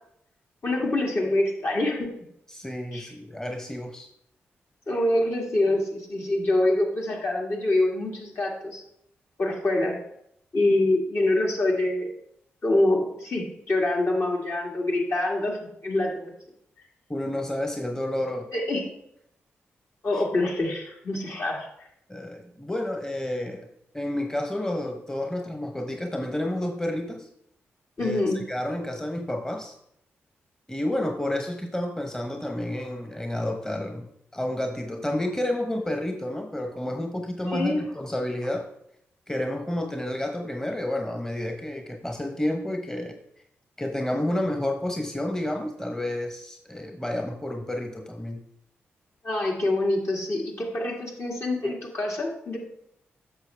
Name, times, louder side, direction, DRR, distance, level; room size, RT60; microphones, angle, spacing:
voice 1, 0.6-2.1 2.9-3.1 4.9-8.8 9.4-10.0 10.5-12.1 12.6-16.3 18.5-18.9 20.0-21.7 28.0-28.4 37.5-37.8 49.2-52.6, left 2 dB, 55° left, -1 dB, 2.0 m, -25 dB
voice 2, 2.5-4.1 17.1-18.5 20.1-20.2 22.1-23.7 23.9-27.3 28.0-29.8 30.7-38.7 39.3-43.2 43.8-48.4, left 1 dB, 10° left, 4 dB, 1.0 m, -30 dB
8.2 x 6.3 x 3.4 m, 0.74 s
supercardioid pair, 40°, 5 cm